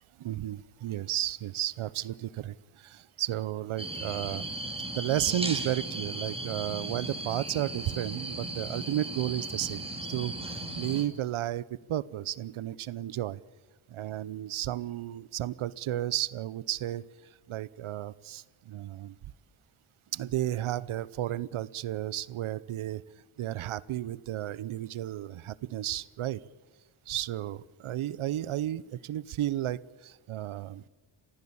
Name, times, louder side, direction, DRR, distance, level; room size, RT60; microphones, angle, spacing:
voice 1, 0.2-4.5 4.9-9.8 10.1-13.4 13.9-17.0 17.5-19.2 20.1-23.0 23.4-26.4 27.1-30.8, right 12 dB, 85° right, 20 dB, 0.8 m, -33 dB
sound 1, 3.8-11.0, right 2 dB, 10° right, 3.4 m, -36 dB
29.0 x 15.5 x 8.6 m, 1.3 s
wide cardioid pair, 105°, 48 cm